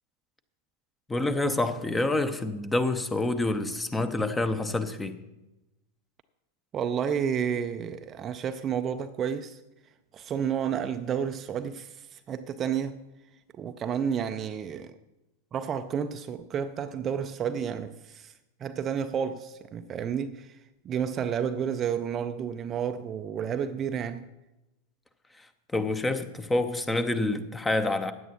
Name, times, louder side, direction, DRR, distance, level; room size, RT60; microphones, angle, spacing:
voice 1, 1.1-5.2 25.4-25.5 25.7-28.1, left 2 dB, 10° left, 0.8 m, -27 dB
voice 2, 6.7-9.6 10.1-13.0 13.6-14.9 15.5-18.3 18.6-20.6 20.8-24.2, right 8 dB, 25° right, 0.5 m, -31 dB
15.5 x 10.0 x 3.0 m
figure-of-eight pair, 90°, 0 cm